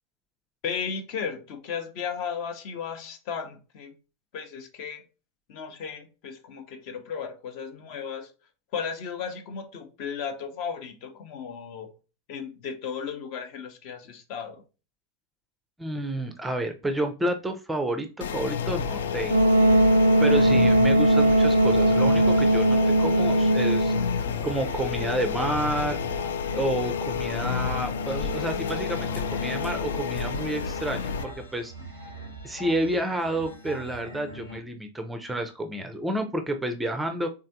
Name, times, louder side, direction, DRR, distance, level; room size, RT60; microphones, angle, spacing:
voice 1, 0.6-3.9 4.3-5.0 5.5-8.3 8.7-11.9 12.3-14.6, left 6 dB, 45° left, 0.7 m, -35 dB
voice 2, 15.8-19.8 20.2-23.9 24.4-26.2 26.5-31.7 32.4-37.3, right 1 dB, 5° right, 0.5 m, -30 dB
sound 1, 18.2-31.2, left 6 dB, 60° left, 0.3 m, -30 dB
Wind instrument woodwind instrument, 19.3-24.1, right 1 dB, 70° right, 0.4 m, -19 dB
sound 2, 24.2-34.6, left 2 dB, 80° left, 1.0 m, -40 dB
3.6 x 3.2 x 2.7 m
figure-of-eight pair, 90°, 0 cm